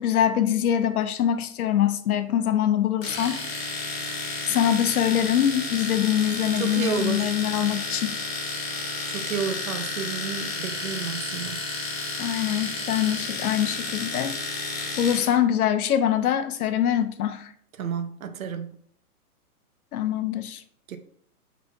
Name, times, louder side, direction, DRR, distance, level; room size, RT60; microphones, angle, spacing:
voice 1, 0.0-3.4 4.5-8.1 12.2-14.7 15.0-17.5 19.9-20.6, left 10 dB, 70° left, 0.6 m, -24 dB
Domestic sounds home sounds, 3.0-15.3, left 3 dB, 40° left, 1.3 m, -32 dB
voice 2, 6.6-7.3 9.1-11.6 17.8-18.8 20.9-21.0, right 7 dB, 65° right, 0.7 m, -31 dB
4.4 x 4.0 x 2.4 m
hypercardioid pair, 165°, 45 cm